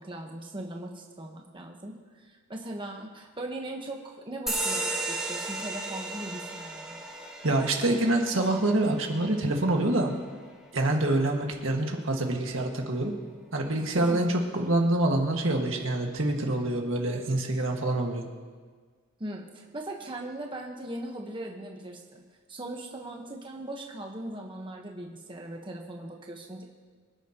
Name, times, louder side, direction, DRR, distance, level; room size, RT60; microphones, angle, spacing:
voice 1, 0.0-7.0 13.9-14.3 19.2-22.2 22.5-26.6, right 1 dB, 25° right, 0 dB, 1.2 m, -39 dB
sound 1, 4.5-11.5, right 2 dB, ahead, 2.3 m, -36 dB
voice 2, 7.4-10.1 10.7-13.1 13.5-18.2, right 1 dB, 75° right, 1 dB, 1.8 m, -26 dB
25.0 x 10.5 x 3.0 m, 1.5 s
head